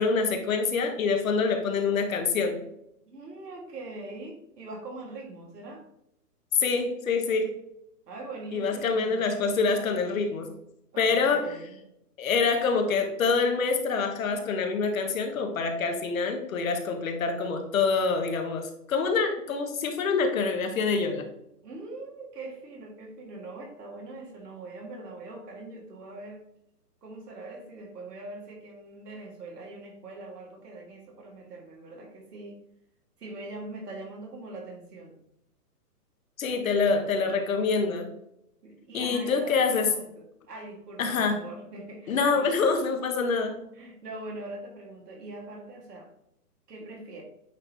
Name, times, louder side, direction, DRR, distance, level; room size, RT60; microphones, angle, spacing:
voice 1, 0.0-2.6 6.6-7.6 8.5-10.5 11.0-11.5 12.2-21.2 36.4-38.1 38.9-39.9 41.0-41.4 42.1-43.6, left 4 dB, 55° left, 5 dB, 1.2 m, -26 dB
voice 2, 3.1-5.8 8.1-9.4 10.9-11.8 21.6-26.4 27.0-32.6 33.2-35.2 38.6-42.5 43.7-46.1 46.7-47.2, right 2 dB, 75° right, 0 dB, 2.2 m, -42 dB
8.8 x 3.0 x 3.7 m, 0.79 s
hypercardioid pair, 165°, 48 cm